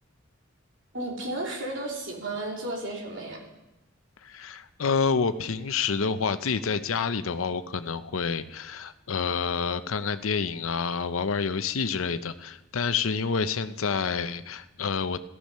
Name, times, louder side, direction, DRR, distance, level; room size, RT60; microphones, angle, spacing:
voice 1, 0.9-3.4, right 2 dB, 65° right, -2 dB, 3.3 m, -33 dB
voice 2, 4.2-15.2, left 5 dB, 90° left, 12 dB, 0.7 m, -28 dB
13.5 x 13.5 x 5.5 m, 0.99 s
head